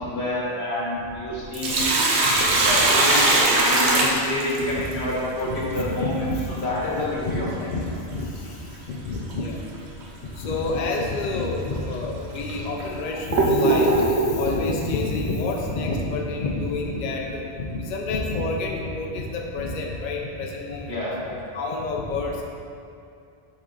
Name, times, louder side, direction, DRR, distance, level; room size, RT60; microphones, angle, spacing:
voice 1, 0.0-1.8 2.5-3.3 3.6-7.7 20.9-21.2, left 1 dB, 80° left, -5 dB, 1.7 m, -28 dB
Sink (filling or washing), 1.3-4.9 7.3-7.4 9.3-9.5 10.0-10.1 10.9-11.0 11.7-11.8 12.5-14.4, right 2 dB, 90° right, 1.1 m, -20 dB
voice 2, 2.2-3.1 4.6-4.7 5.4-5.6 6.0-6.4 7.3-7.4 7.7-7.8 8.1-8.3 8.9-9.6 10.4-21.0 21.5-22.4, left 3 dB, 50° left, -1 dB, 0.7 m, -28 dB
7.9 x 4.1 x 3.8 m, 2.6 s
omnidirectional pair, 1.1 m